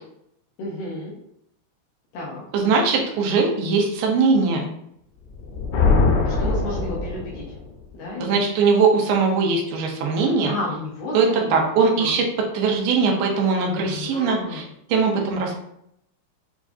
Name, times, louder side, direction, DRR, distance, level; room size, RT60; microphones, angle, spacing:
voice 1, 0.6-1.1 2.1-2.4 6.2-7.4 7.9-8.4 10.4-11.7 12.0-12.2 13.8-14.6, left 2 dB, 70° left, -6 dB, 2.4 m, -32 dB
voice 2, 2.5-4.7 8.2-10.5 11.1-12.3 12.5-14.6 14.9-15.6, right 4 dB, 90° right, 0 dB, 2.7 m, -20 dB
Thunder, 5.3-7.6, left 4 dB, 85° left, 2.8 m, -22 dB
7.1 x 2.4 x 2.5 m, 0.74 s
omnidirectional pair, 4.6 m